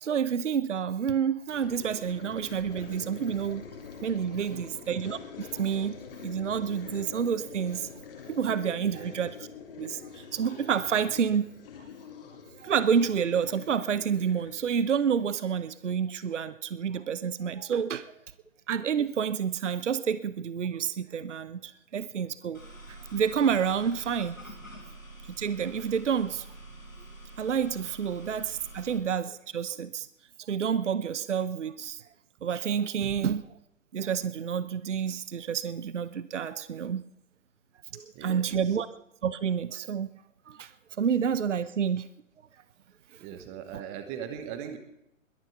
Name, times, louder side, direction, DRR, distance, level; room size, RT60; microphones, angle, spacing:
voice 1, 0.0-3.6 4.0-5.9 6.2-7.9 8.3-9.4 9.8-11.4 12.6-18.1 18.7-22.6 22.9-24.4 25.4-26.5 27.4-30.1 30.5-32.0 32.4-33.4 33.9-37.0 38.2-38.9 39.2-40.1 40.5-40.7 41.0-42.1, right 7 dB, 60° right, 15 dB, 0.8 m, -29 dB
sound 1, 1.5-15.4, left 6 dB, 40° left, 2.7 m, -45 dB
voice 2, 4.3-4.8 8.7-9.1 38.1-38.8 43.2-44.8, right 8 dB, 15° right, 8 dB, 1.3 m, -41 dB
sound 2, 22.5-29.0, right 2 dB, 90° left, 6.4 m, -46 dB
21.5 x 11.0 x 4.6 m, 0.81 s
figure-of-eight pair, 130°, 40 cm